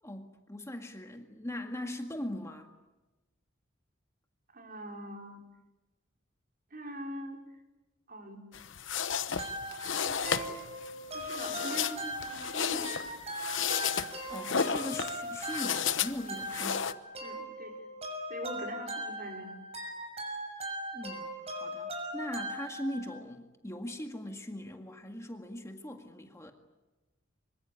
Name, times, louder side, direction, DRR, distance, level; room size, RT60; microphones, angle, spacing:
voice 1, 0.0-2.7 14.3-16.9 20.9-26.5, left 1 dB, 15° left, 4 dB, 1.9 m, -40 dB
voice 2, 4.5-5.4 6.7-7.4 8.1-8.4 10.0-10.6 11.1-13.2 17.2-17.9 18.3-19.5, equal, 50° right, 2 dB, 5.0 m, -42 dB
sound 1, 8.5-16.9, left 7 dB, 70° left, 1.0 m, -33 dB
sound 2, 9.4-23.2, right 1 dB, 35° right, 6.5 m, -40 dB
25.0 x 24.0 x 8.7 m, 1.1 s
head